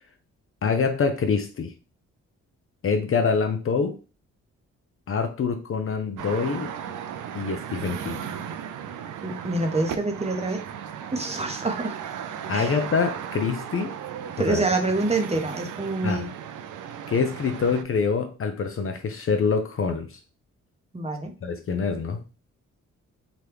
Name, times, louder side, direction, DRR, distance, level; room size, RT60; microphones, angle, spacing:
voice 1, 0.6-1.7 2.8-4.0 5.1-6.7 7.3-8.2 12.5-13.9 14.4-14.6 16.0-16.3 17.1-20.2 21.4-22.2, left 5 dB, 45° left, 7 dB, 0.5 m, -25 dB
sound 1, 6.2-17.8, right 8 dB, 70° right, 0.5 m, -36 dB
voice 2, 9.2-10.6 11.1-12.0 12.5-12.7 14.4-16.3 20.9-21.3, right 2 dB, 20° right, 3 dB, 0.7 m, -26 dB
3.0 x 2.3 x 3.3 m, 0.34 s
cardioid pair, 60°, 32 cm